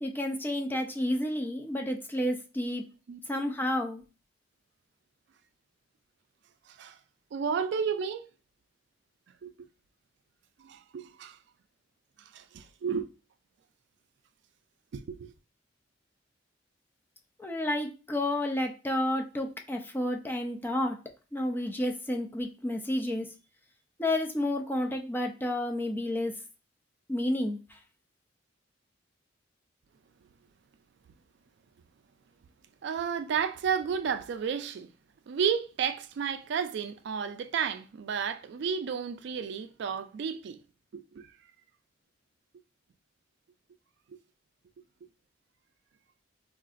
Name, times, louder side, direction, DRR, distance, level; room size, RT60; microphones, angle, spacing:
voice 1, 0.0-2.8 3.3-4.0 17.4-21.0 21.3-23.3 24.0-26.3 27.1-27.8, left 1 dB, 10° left, 0.4 m, -30 dB
voice 2, 6.7-7.0 7.3-8.3 9.4-9.5 10.6-11.4 12.3-13.1 14.9-15.3 32.8-34.9 35.3-40.6 40.9-41.3, right 7 dB, 65° right, 0.3 m, -32 dB
3.8 x 2.4 x 2.4 m
head